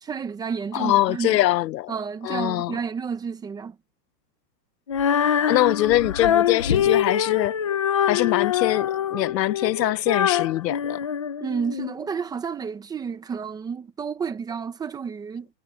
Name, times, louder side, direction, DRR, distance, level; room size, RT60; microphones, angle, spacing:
voice 1, 0.0-1.4 1.9-3.8 11.4-15.5, right 6 dB, 10° right, 0.7 m, -31 dB
voice 2, 0.7-1.9 2.2-2.7 5.5-7.6 8.1-11.0, left 15 dB, 80° left, 0.8 m, -23 dB
Female singing, 4.9-11.9, left 9 dB, 20° left, 0.4 m, -24 dB
supercardioid pair, 160°, 49 cm